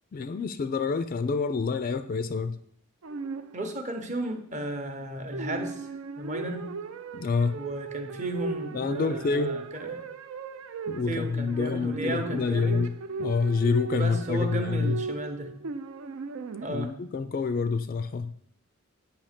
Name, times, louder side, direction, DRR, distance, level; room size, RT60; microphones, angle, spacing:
voice 1, 0.1-2.6 7.1-7.6 8.7-9.6 10.9-15.0 16.7-18.3, left 4 dB, 40° left, 11 dB, 0.3 m, -27 dB
sound 1, 3.0-3.9 5.3-16.7, right 4 dB, 85° right, 0.5 m, -37 dB
voice 2, 3.5-5.9 6.2-6.7 7.5-10.0 11.1-12.8 14.0-15.5 16.6-16.9, right 1 dB, 35° right, 5 dB, 0.8 m, -34 dB
8.4 x 2.8 x 5.8 m, 0.67 s
head